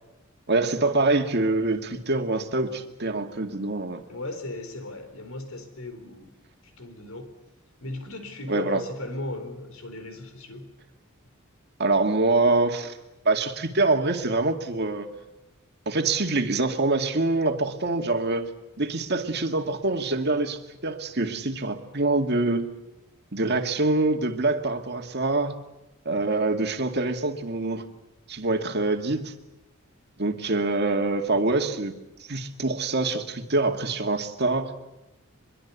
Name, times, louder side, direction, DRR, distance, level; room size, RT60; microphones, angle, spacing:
voice 1, 0.5-4.0 8.5-8.8 11.8-13.0 13.3-15.1 15.9-18.5 18.8-22.7 23.3-25.5 26.1-27.8 28.3-29.3 30.2-31.9 32.3-34.7, right 2 dB, 50° right, 5 dB, 2.2 m, -25 dB
voice 2, 4.1-6.3 6.6-7.4 7.8-10.7, left 2 dB, 80° left, 8 dB, 4.2 m, -37 dB
24.0 x 22.5 x 8.4 m, 0.96 s
head